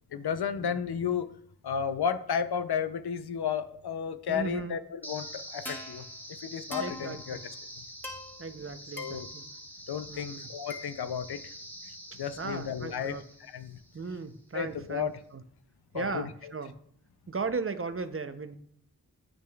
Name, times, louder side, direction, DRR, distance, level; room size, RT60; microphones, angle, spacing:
voice 1, 0.1-1.3 1.6-6.1 6.4-7.4 7.8-7.9 9.0-9.3 9.9-11.5 11.8-13.8 14.5-15.1 15.9-16.5, left 7 dB, 85° left, 11 dB, 0.5 m, -33 dB
voice 2, 4.3-4.8 6.8-7.4 8.4-9.5 10.1-10.5 12.4-13.2 13.9-15.4 15.9-16.7 17.3-18.6, right 4 dB, 35° right, 10 dB, 0.6 m, -36 dB
sound 1, 5.0-14.1, left 1 dB, 5° left, 1.3 m, -44 dB
8.7 x 6.2 x 2.3 m, 0.66 s
wide cardioid pair, 50°, 38 cm